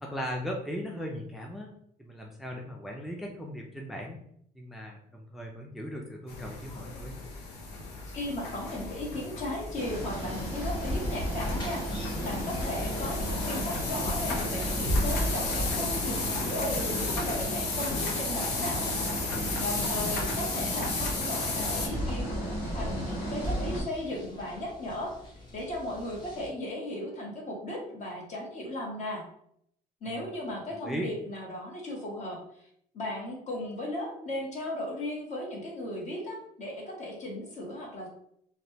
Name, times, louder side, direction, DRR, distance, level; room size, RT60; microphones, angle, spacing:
voice 1, 0.0-1.7 2.0-4.2 4.6-7.2 19.4-20.2 30.1-30.2 30.8-31.1, equal, ahead, 0 dB, 0.4 m, -38 dB
sound 1, 6.3-21.9, left 3 dB, 90° left, 0.6 m, -34 dB
voice 2, 8.1-18.8 19.6-22.4 22.7-29.2 30.0-32.4 32.9-38.1, left 1 dB, 45° left, -1 dB, 1.0 m, -36 dB
sound 2, 9.7-23.8, equal, 65° left, 1.5 m, -33 dB
sound 3, 11.4-26.5, left 2 dB, 25° left, 0.8 m, -49 dB
3.0 x 2.2 x 2.8 m, 0.69 s
cardioid pair, 110°, 17 cm